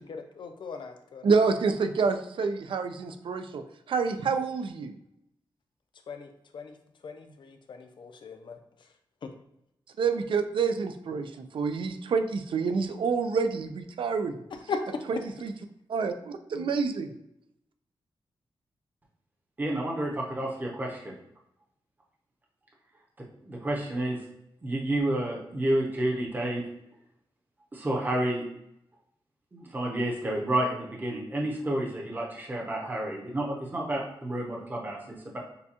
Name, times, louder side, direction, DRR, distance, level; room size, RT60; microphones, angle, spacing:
voice 1, 0.4-1.3 6.1-6.7 7.0-8.6 14.5-14.8 16.5-16.7, left 5 dB, 65° left, 6 dB, 0.6 m, -38 dB
voice 2, 1.2-4.9 10.0-14.4 15.1-15.5 15.9-17.1, right 5 dB, 75° right, 8 dB, 0.4 m, -28 dB
voice 3, 19.6-21.1 23.2-24.2 24.6-26.6 27.7-28.5 29.5-35.4, right 1 dB, 20° right, -2 dB, 0.7 m, -30 dB
6.8 x 2.3 x 2.8 m, 0.80 s
wide cardioid pair, 145°, 9 cm